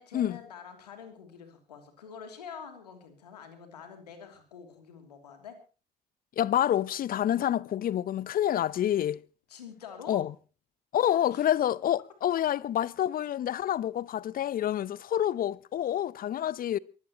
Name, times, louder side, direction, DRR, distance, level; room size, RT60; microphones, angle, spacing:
voice 1, 0.0-5.5 9.5-10.2 11.0-11.5, left 7 dB, 80° left, 2.9 m, -46 dB
voice 2, 6.4-9.2 10.1-10.3 10.9-16.8, left 11 dB, 45° left, 0.8 m, -28 dB
23.0 x 16.5 x 3.0 m
figure-of-eight pair, 50°, 20 cm